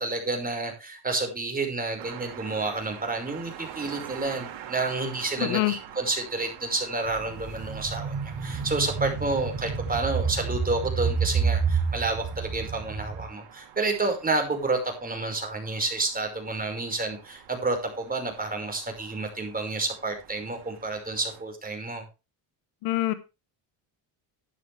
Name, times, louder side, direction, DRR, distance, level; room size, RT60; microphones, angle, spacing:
voice 1, 0.0-22.0, right 3 dB, 20° right, 4 dB, 5.3 m, -30 dB
sound 1, 2.0-21.4, right 10 dB, 75° right, 3.3 m, -46 dB
voice 2, 5.4-5.7 22.8-23.1, left 17 dB, 85° left, 13 dB, 1.4 m, -25 dB
sound 2, 7.1-13.2, right 5 dB, 40° right, 3.1 m, -29 dB
12.5 x 9.9 x 3.4 m, 0.28 s
cardioid pair, 95°, 47 cm